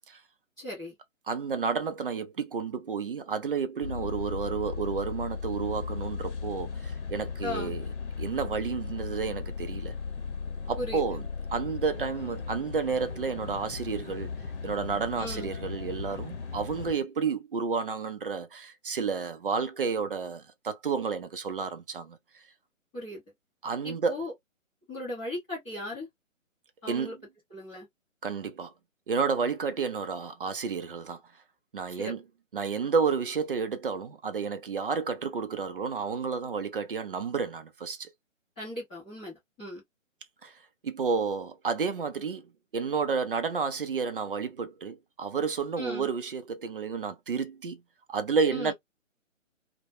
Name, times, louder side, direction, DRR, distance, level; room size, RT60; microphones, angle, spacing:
voice 1, 0.6-0.9 7.4-7.7 10.8-11.0 15.2-15.5 22.9-23.2 23.8-24.3 24.9-26.1 26.8-27.2 27.5-27.9 32.0-32.1 38.6-39.8 45.8-46.1 48.5-48.7, left 1 dB, 5° left, 0.6 m, -37 dB
voice 2, 1.3-7.8 8.2-9.9 10.7-11.2 11.5-14.3 14.6-22.2 23.6-24.2 26.9-27.1 28.2-28.7 29.1-31.2 31.7-32.2 32.5-38.1 40.4-40.5 40.8-42.5 42.7-47.8 48.1-48.7, right 5 dB, 45° right, 0.5 m, -31 dB
sound 1, 3.8-16.9, left 5 dB, 55° left, 0.8 m, -36 dB
2.2 x 2.1 x 2.9 m
figure-of-eight pair, 145°, 40 cm